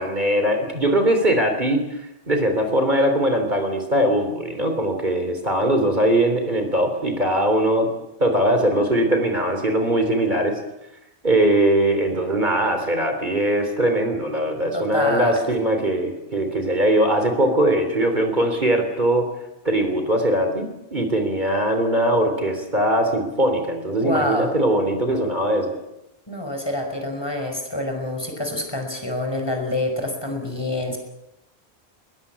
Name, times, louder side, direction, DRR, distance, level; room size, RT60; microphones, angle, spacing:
voice 1, 0.0-2.0 2.3-7.9 8.2-10.6 11.2-19.3 19.7-25.8, right 1 dB, 45° right, 5 dB, 3.6 m, -21 dB
voice 2, 14.7-15.4 24.0-24.5 26.3-31.0, left 1 dB, 25° left, 4 dB, 5.5 m, -26 dB
22.0 x 21.5 x 8.7 m, 0.90 s
omnidirectional pair, 1.1 m